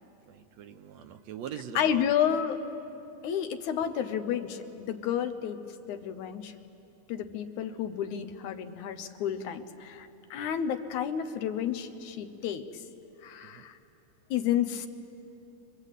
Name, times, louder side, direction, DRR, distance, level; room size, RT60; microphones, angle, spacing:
voice 1, 0.3-2.1 13.4-13.7, right 8 dB, 70° right, 7 dB, 1.9 m, -42 dB
voice 2, 1.8-2.6 3.2-5.6 5.9-6.5 7.1-12.8 13.2-13.8 14.3-14.9, left 9 dB, 75° left, 8 dB, 2.4 m, -31 dB
27.5 x 25.0 x 8.3 m, 2.8 s
omnidirectional pair, 3.5 m